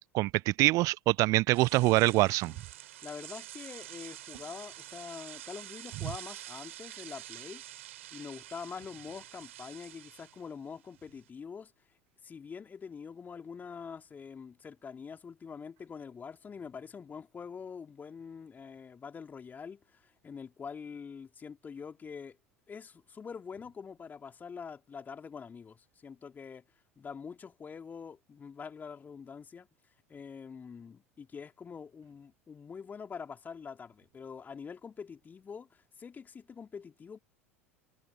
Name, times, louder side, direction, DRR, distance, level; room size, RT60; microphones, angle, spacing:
voice 1, 0.1-2.5, right 20 dB, 45° right, 0.7 m, -25 dB
sound 1, 1.5-11.3, right 14 dB, 65° right, 3.9 m, -48 dB
voice 2, 3.0-7.6 8.1-11.7 12.2-22.4 22.7-26.6 27.0-29.7 30.1-37.2, left 6 dB, 25° left, 3.4 m, -45 dB
figure-of-eight pair, 75°, 8 cm